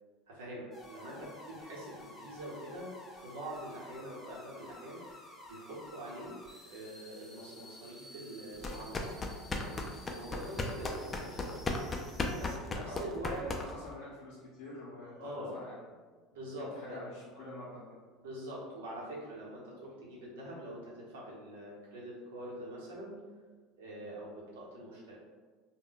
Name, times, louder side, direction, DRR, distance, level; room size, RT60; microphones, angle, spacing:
voice 1, 0.3-5.2 5.5-6.3 6.6-9.0 9.5-11.6 12.4-13.3 15.1-15.6 16.3-17.0 18.2-23.2 23.8-25.2, right 1 dB, 85° right, -5 dB, 0.9 m, -44 dB
sound 1, 0.7-12.6, left 1 dB, 5° left, 0.8 m, -53 dB
sound 2, 8.6-13.9, left 2 dB, 25° left, 0.4 m, -36 dB
voice 2, 12.8-15.8 16.5-18.0, equal, 80° left, -7 dB, 0.6 m, -46 dB
2.2 x 2.2 x 3.8 m, 1.4 s
supercardioid pair, 95°, 0 cm